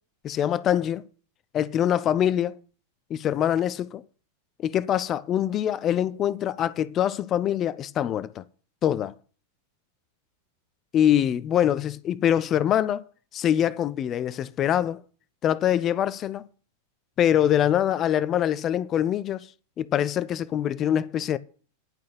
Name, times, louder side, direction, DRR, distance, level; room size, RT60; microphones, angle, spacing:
voice 1, 0.2-1.0 1.5-2.5 3.1-4.0 4.6-8.4 8.8-9.1 10.9-13.0 13.3-15.0 15.4-16.5 17.2-19.5 19.8-21.4, left 10 dB, 30° left, 0.5 m, -24 dB
10.5 x 6.3 x 8.4 m
figure-of-eight pair, 90°, 0 cm